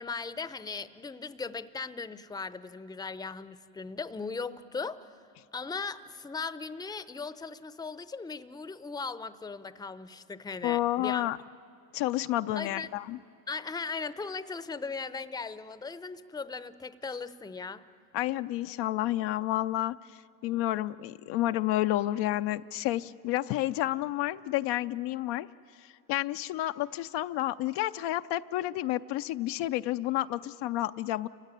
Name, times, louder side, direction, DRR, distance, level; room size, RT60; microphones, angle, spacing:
voice 1, 0.0-5.1 5.5-11.2 12.5-12.9 13.5-17.8, left 4 dB, 10° left, 15 dB, 0.7 m, -38 dB
voice 2, 10.6-11.4 11.9-13.2 18.1-20.0 20.4-25.5 25.8-31.3, left 15 dB, 60° left, 10 dB, 0.6 m, -30 dB
28.5 x 16.0 x 9.8 m, 2.4 s
hypercardioid pair, 80°, 49 cm